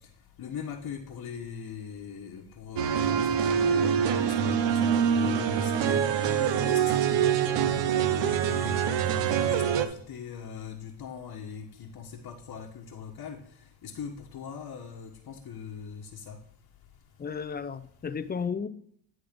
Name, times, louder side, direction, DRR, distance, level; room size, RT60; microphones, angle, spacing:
voice 1, 0.4-6.0 6.4-13.4 13.8-16.4, left 7 dB, 45° left, 1.3 m, -41 dB
sound 1, 2.8-9.9, right 8 dB, 70° right, 1.0 m, -25 dB
voice 2, 17.2-18.7, left 6 dB, 20° left, 0.6 m, -33 dB
10.5 x 3.9 x 5.2 m
supercardioid pair, 80°, 46 cm